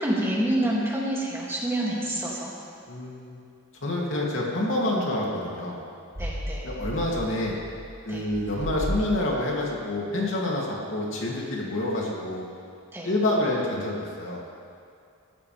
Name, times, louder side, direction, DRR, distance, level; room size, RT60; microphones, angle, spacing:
voice 1, 0.0-2.5 6.2-6.6 8.1-8.3 12.9-13.1, right 1 dB, 10° right, -5 dB, 2.6 m, -27 dB
voice 2, 2.9-3.4 3.8-5.8 6.6-7.5 8.0-12.5 13.0-14.4, left 1 dB, 65° left, -3 dB, 2.9 m, -27 dB
sound 1, 6.1-9.5, equal, 55° right, 4.1 m, -34 dB
23.0 x 14.0 x 3.5 m, 2.4 s
head